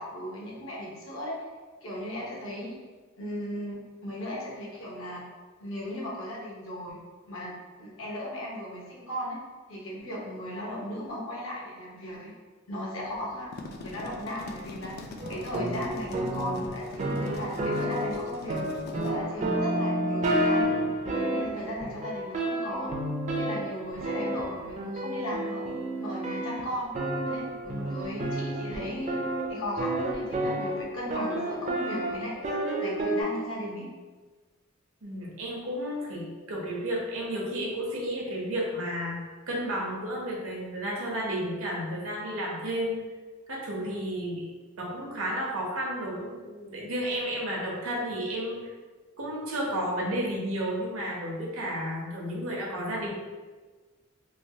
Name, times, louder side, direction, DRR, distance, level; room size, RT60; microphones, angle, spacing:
voice 1, 0.0-1.3 1.8-2.8 3.2-5.2 5.6-7.0 7.3-9.4 9.7-12.3 12.7-13.5 13.8-18.6 19.0-20.8 21.2-22.9 23.3-25.6 26.0-26.9 27.2-29.2 29.5-32.3 32.8-33.9, left 1 dB, 75° left, -4 dB, 0.9 m, -36 dB
sound 1, 13.3-19.1, left 3 dB, 50° left, 0.3 m, -44 dB
sound 2, 15.2-33.2, right 1 dB, 35° right, 0.4 m, -30 dB
voice 2, 35.0-39.2 39.5-43.0 43.5-44.4 44.8-48.6 49.2-53.1, equal, 80° right, -3 dB, 0.8 m, -32 dB
3.2 x 2.3 x 2.7 m, 1.4 s
head